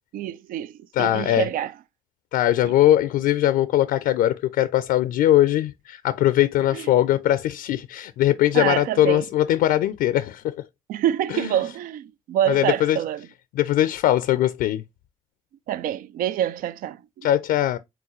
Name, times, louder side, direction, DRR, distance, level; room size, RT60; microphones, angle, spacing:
voice 1, 0.1-1.7 2.6-2.7 6.7-6.9 8.5-9.3 10.9-13.3 15.7-17.3, right 11 dB, 75° right, 0.4 m, -26 dB
voice 2, 0.9-1.5 2.3-10.6 11.3-11.5 12.5-13.0 13.6-14.8 17.2-17.8, left 13 dB, 80° left, 0.4 m, -21 dB
4.6 x 3.8 x 3.0 m
hypercardioid pair, 40°, 15 cm